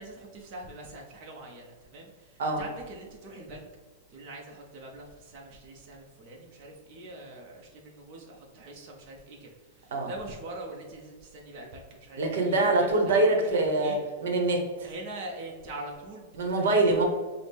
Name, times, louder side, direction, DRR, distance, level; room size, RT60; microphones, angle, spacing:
voice 1, 0.0-3.7 4.1-14.0 14.8-16.8, right 2 dB, 45° right, 0 dB, 0.7 m, -43 dB
voice 2, 12.2-14.9 16.4-17.0, right 2 dB, 80° right, 2 dB, 0.8 m, -24 dB
5.9 x 2.0 x 3.4 m, 1.5 s
hypercardioid pair, 140°, 0 cm